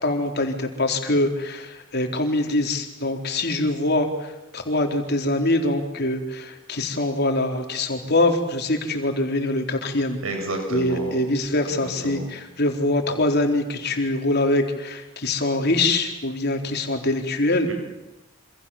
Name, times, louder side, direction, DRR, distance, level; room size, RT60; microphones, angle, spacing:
voice 1, 0.0-10.2 10.7-17.7, left 2 dB, 50° left, 4 dB, 4.1 m, -24 dB
voice 2, 10.2-11.3 11.8-12.3 17.7-17.8, right 1 dB, 80° right, 4 dB, 7.4 m, -30 dB
28.0 x 27.0 x 7.4 m, 0.97 s
head